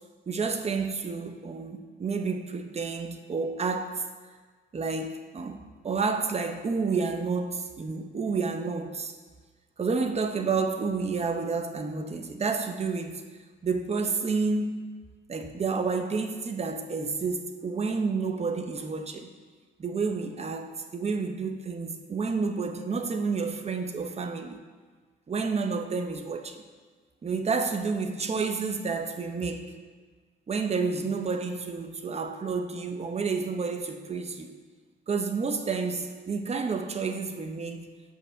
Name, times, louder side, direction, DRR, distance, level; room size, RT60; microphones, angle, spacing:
voice 1, 0.3-4.1 4.7-9.1 9.8-13.2 13.6-14.7 15.3-19.3 19.8-24.6 25.3-26.6 27.2-29.7 30.5-34.5 35.1-37.9, right 4 dB, 30° right, 0.7 m, -30 dB
5.5 x 5.5 x 6.4 m
cardioid pair, 90°, 20 cm